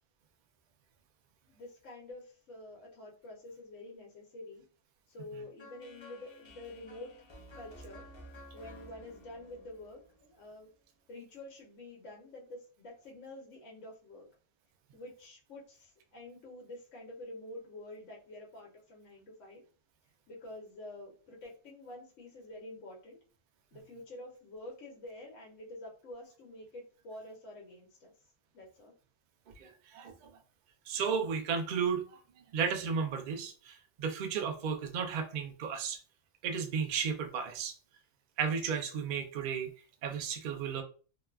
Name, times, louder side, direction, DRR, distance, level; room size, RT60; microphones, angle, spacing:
voice 1, 1.5-4.6 5.1-7.1 7.5-8.0 8.5-10.7 11.1-14.3 14.9-19.6 20.3-23.2 23.7-28.1 28.5-28.9, left 1 dB, 70° left, -2 dB, 1.1 m, -48 dB
sound 1, 5.6-10.6, equal, 45° left, 0.3 m, -53 dB
voice 2, 29.6-30.3 30.9-32.2 32.5-36.0 36.4-37.7 38.4-39.7 40.0-40.8, right 6 dB, 75° right, 5 dB, 0.4 m, -34 dB
2.8 x 2.3 x 2.2 m, 0.39 s
omnidirectional pair, 1.4 m